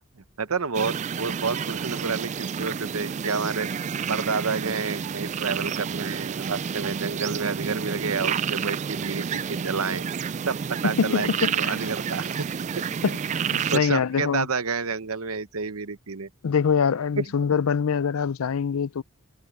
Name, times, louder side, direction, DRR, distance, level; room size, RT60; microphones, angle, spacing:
voice 1, 0.0-10.1 10.4-10.6 10.8-12.5 12.8-12.9 13.7-16.3 17.2-17.3, right 5 dB, 85° right, 1.0 m, -29 dB
sound 1, 0.7-13.8, right 7 dB, 35° right, 0.3 m, -30 dB
voice 2, 10.9-11.9 13.0-14.5 16.4-19.0, left 6 dB, 80° left, 0.5 m, -24 dB
head